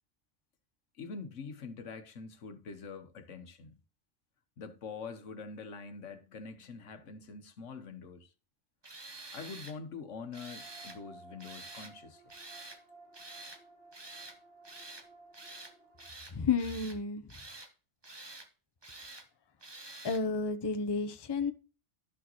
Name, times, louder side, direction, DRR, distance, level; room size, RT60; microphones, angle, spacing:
voice 1, 1.0-3.7 4.6-8.3 9.3-12.2, left 5 dB, 80° left, 1.4 m, -45 dB
Tools, 8.8-9.8 10.3-11.0 11.4-11.9 12.3-12.8 13.1-13.6 13.9-14.4 14.6-15.1 15.3-15.7 16.0-17.0 17.3-17.7 18.0-18.5 18.8-19.3 19.6-20.2, right 2 dB, 20° right, 1.0 m, -48 dB
sound 1, 10.3-16.1, right 3 dB, 65° right, 4.5 m, -57 dB
voice 2, 16.3-17.3 20.0-21.5, left 5 dB, 25° left, 0.7 m, -31 dB
12.0 x 6.3 x 3.0 m
omnidirectional pair, 1.2 m